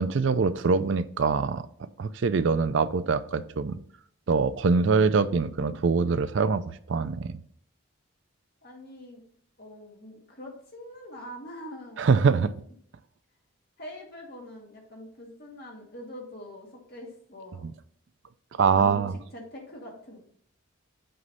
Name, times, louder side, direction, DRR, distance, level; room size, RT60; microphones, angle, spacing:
voice 1, 0.0-1.6 2.0-3.8 4.3-7.3 12.0-12.5 17.6-17.7 18.6-19.1, right 5 dB, 60° right, 14 dB, 0.4 m, -24 dB
voice 2, 8.6-9.2 9.6-12.6 13.8-17.6 18.7-20.2, left 1 dB, 45° left, 0 dB, 2.0 m, -44 dB
7.8 x 3.2 x 5.4 m, 0.62 s
head